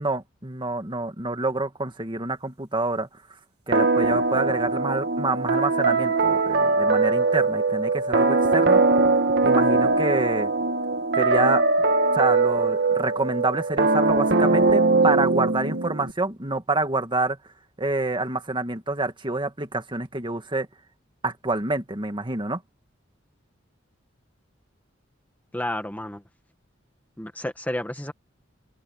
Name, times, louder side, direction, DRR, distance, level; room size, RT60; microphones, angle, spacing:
voice 1, 0.0-3.1 3.7-9.0 9.4-10.5 11.2-11.6 12.1-17.4 17.8-20.7 21.2-22.6, right 2 dB, 25° right, 2.0 m, -27 dB
sound 1, 3.7-16.1, right 3 dB, 55° right, 1.8 m, -21 dB
voice 2, 25.5-26.2 27.2-28.1, left 1 dB, 10° left, 1.5 m, -31 dB
open air
head